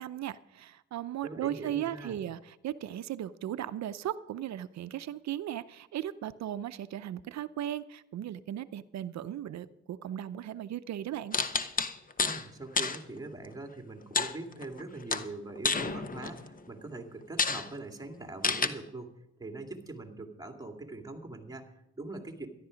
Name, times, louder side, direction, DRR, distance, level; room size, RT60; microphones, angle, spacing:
voice 1, 0.0-11.4, right 11 dB, 65° right, 14 dB, 0.7 m, -37 dB
voice 2, 1.2-2.2 12.2-22.5, right 2 dB, 10° right, 3 dB, 2.2 m, -42 dB
sound 1, 11.3-12.4 12.8-13.0 14.1-14.8 15.1-16.5 16.9-17.0 17.4-17.7 18.4-18.7, left 4 dB, 30° left, 1.0 m, -29 dB
13.0 x 11.5 x 5.1 m, 0.89 s
cardioid pair, 90°, 30 cm